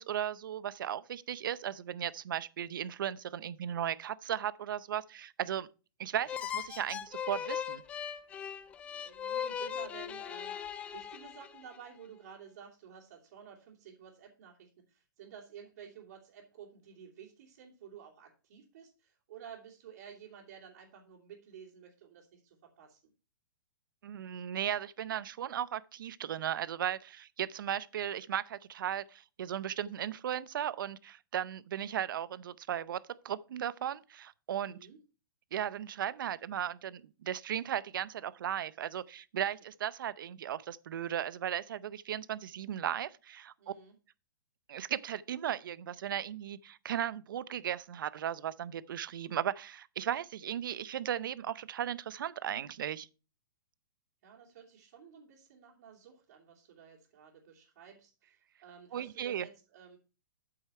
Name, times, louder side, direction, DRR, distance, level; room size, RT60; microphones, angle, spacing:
voice 1, 0.0-5.7 6.0-7.8 24.0-34.8 35.5-43.5 44.7-53.1 58.9-59.5, right 10 dB, 65° right, 0.7 m, -36 dB
sound 1, 6.3-11.8, left 8 dB, 10° left, 0.4 m, -39 dB
voice 2, 8.8-23.0 34.6-35.0 43.6-44.0 54.2-60.0, right 8 dB, 50° right, 3.1 m, -53 dB
8.7 x 7.9 x 4.4 m
hypercardioid pair, 165°, 12 cm